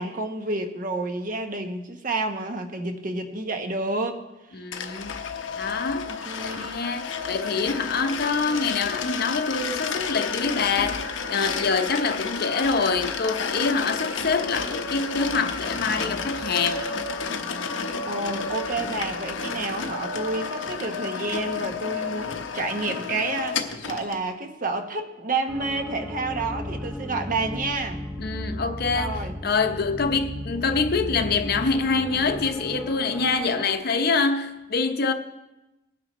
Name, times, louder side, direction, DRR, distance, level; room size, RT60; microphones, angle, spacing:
voice 1, 0.0-4.2 4.5-4.6 6.0-6.8 18.1-28.0 28.9-29.8, right 3 dB, 45° right, 1.1 m, -30 dB
voice 2, 4.5-5.3 5.6-16.9 28.2-35.1, left 4 dB, 55° left, 0.8 m, -25 dB
sound 1, 4.7-24.2, left 5 dB, 90° left, 0.9 m, -31 dB
sound 2, 25.5-33.8, left 1 dB, 5° right, 0.8 m, -35 dB
20.0 x 9.5 x 3.1 m
head